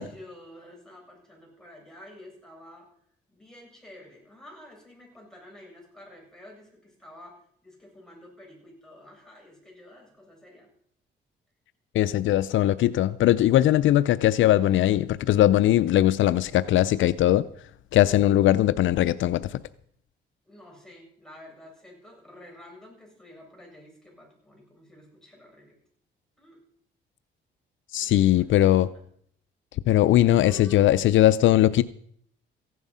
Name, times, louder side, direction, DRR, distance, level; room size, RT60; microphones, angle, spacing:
voice 1, 0.0-2.9 3.3-10.7 20.5-25.8 26.4-26.6 27.9-29.0 30.4-31.0, left 1 dB, 5° left, -2 dB, 8.0 m, -50 dB
voice 2, 11.9-17.5 17.9-19.6 27.9-28.9 29.9-31.8, left 13 dB, 75° left, 15 dB, 0.5 m, -20 dB
15.5 x 11.0 x 5.5 m, 0.64 s
cardioid pair, 90°, 20 cm